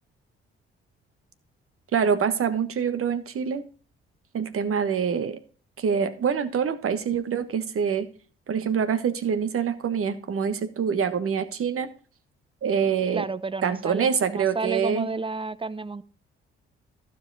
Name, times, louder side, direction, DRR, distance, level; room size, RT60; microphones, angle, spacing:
voice 1, 1.9-3.6 4.3-5.4 5.8-8.1 8.5-11.9 12.6-13.3 13.6-15.1, right 7 dB, 45° right, 1.3 m, -25 dB
voice 2, 13.1-16.0, right 3 dB, 15° right, 0.8 m, -31 dB
14.5 x 5.2 x 4.1 m
figure-of-eight pair, 45°, 30 cm